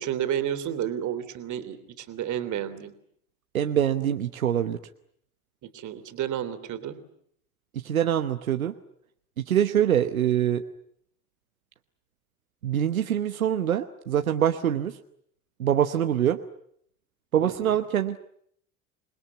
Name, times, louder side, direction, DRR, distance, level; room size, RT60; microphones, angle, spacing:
voice 1, 0.0-2.9 5.6-7.0 17.4-17.8, right 10 dB, 45° right, 11 dB, 3.2 m, -31 dB
voice 2, 3.5-4.8 7.7-8.7 9.5-10.6 12.6-15.0 15.6-16.4 17.3-18.2, right 10 dB, 85° right, 8 dB, 1.1 m, -24 dB
27.5 x 21.0 x 9.7 m, 0.70 s
figure-of-eight pair, 70°, 41 cm